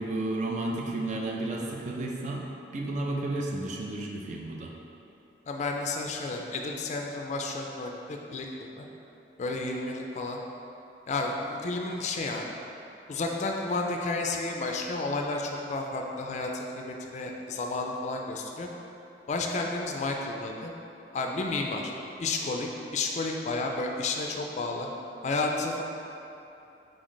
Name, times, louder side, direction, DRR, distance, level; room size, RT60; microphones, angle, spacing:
voice 1, 0.0-2.5 2.7-4.7, right 2 dB, 40° right, 0 dB, 0.5 m, -32 dB
voice 2, 5.5-8.9 9.4-10.4 11.1-12.5 13.1-18.7 19.3-20.7 21.1-21.9 22.2-24.9 25.2-25.8, left 3 dB, 40° left, 1 dB, 0.4 m, -31 dB
3.9 x 3.1 x 3.9 m, 2.9 s
head